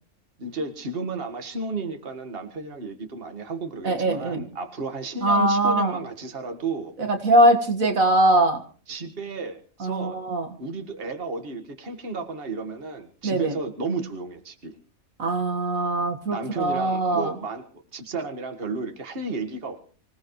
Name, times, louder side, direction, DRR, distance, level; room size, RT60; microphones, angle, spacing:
voice 1, 0.4-6.9 8.9-10.2 10.6-14.8 16.3-17.6 17.9-19.8, right 3 dB, 40° right, 6 dB, 1.9 m, -32 dB
voice 2, 3.8-4.5 5.2-6.0 7.0-8.6 9.8-10.5 13.2-13.5 15.2-17.3, right 1 dB, 65° right, 5 dB, 2.1 m, -21 dB
26.0 x 17.5 x 3.1 m, 0.41 s
omnidirectional pair, 1.5 m